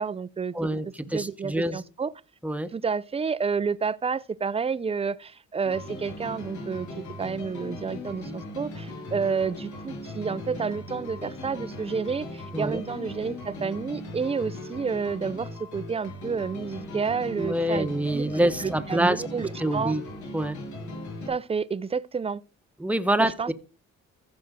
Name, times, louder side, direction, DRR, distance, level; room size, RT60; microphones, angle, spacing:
voice 1, 0.0-0.5 1.1-2.1 2.7-20.0 21.3-22.4 23.2-23.5, right 5 dB, 20° right, 0.5 m, -30 dB
voice 2, 0.5-1.8 2.4-2.7 12.5-12.8 17.4-19.2 19.6-20.0 20.3-20.6 22.8-23.5, right 1 dB, 5° right, 1.1 m, -26 dB
sound 1, 5.6-21.3, left 1 dB, 75° left, 6.4 m, -38 dB
15.0 x 6.1 x 3.7 m
cardioid pair, 90°, 30 cm